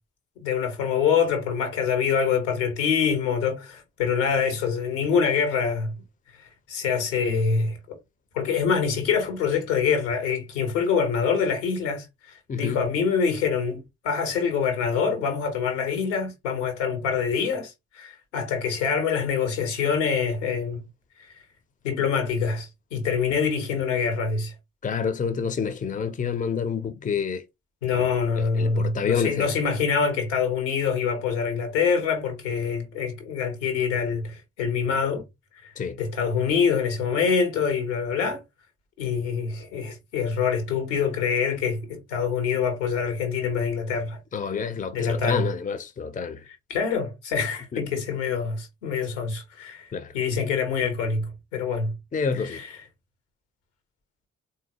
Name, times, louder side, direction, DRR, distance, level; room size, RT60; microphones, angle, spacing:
voice 1, 0.4-5.9 6.7-7.8 8.3-20.8 21.2-21.3 21.8-24.5 27.8-35.2 35.6-35.7 36.0-38.4 39.0-44.2 44.9-45.5 46.7-49.9 50.1-52.0 52.4-52.7, left 6 dB, 75° left, 1.3 m, -25 dB
voice 2, 12.5-12.8 24.8-27.4 28.0-28.1 28.4-29.5 35.8-36.0 44.3-46.4 47.7-47.8 49.9-50.1 52.1-52.6, left 6 dB, 20° left, 0.7 m, -28 dB
3.8 x 2.8 x 2.9 m
figure-of-eight pair, 40°, 36 cm